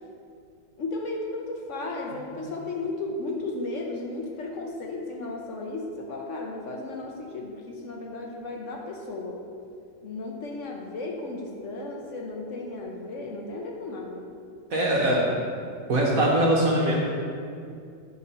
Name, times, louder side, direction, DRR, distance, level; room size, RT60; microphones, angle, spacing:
voice 1, 0.8-9.4 10.0-14.3, left 2 dB, 60° left, 0 dB, 0.8 m, -34 dB
voice 2, 14.7-15.2 15.9-17.0, right 1 dB, 55° right, -3 dB, 1.2 m, -22 dB
8.6 x 3.8 x 5.4 m, 2.4 s
omnidirectional pair, 2.0 m